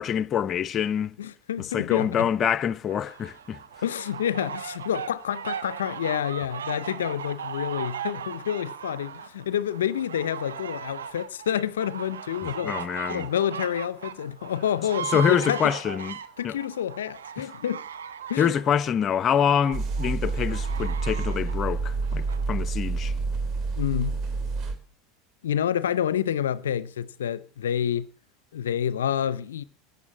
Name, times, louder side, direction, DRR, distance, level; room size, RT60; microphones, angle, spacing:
voice 1, 0.0-1.1 1.6-3.6 12.4-13.3 15.0-16.1 16.4-16.5 17.4-17.5 18.4-23.1, left 8 dB, 35° left, 0.7 m, -26 dB
voice 2, 1.2-2.3 3.8-12.8 13.1-15.7 16.4-17.8 18.3-18.5 23.8-24.2 25.4-28.1 28.5-29.6, left 9 dB, 80° left, 0.6 m, -28 dB
sound 1, 2.9-22.4, right 8 dB, 80° right, 1.3 m, -38 dB
sound 2, 19.7-24.7, right 4 dB, 45° right, 3.4 m, -28 dB
14.5 x 9.6 x 7.3 m
hypercardioid pair, 80°, 0 cm